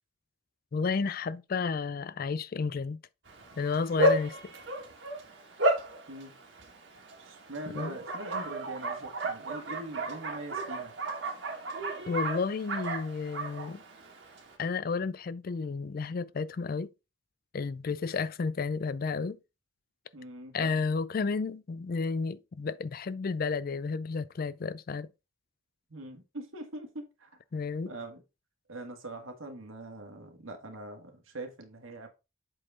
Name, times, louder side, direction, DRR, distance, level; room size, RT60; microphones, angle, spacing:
voice 1, 0.7-3.0 3.6-4.5 7.7-8.0 12.1-13.8 14.6-16.9 17.5-19.4 20.5-25.1 27.5-27.9, left 4 dB, 45° left, 0.4 m, -32 dB
Bark, 3.3-14.5, right 1 dB, 60° right, 1.8 m, -33 dB
voice 2, 7.2-10.9 20.1-20.8 25.9-27.3 27.9-28.2 28.7-32.1, right 2 dB, 75° right, 1.7 m, -43 dB
7.7 x 4.3 x 3.6 m
head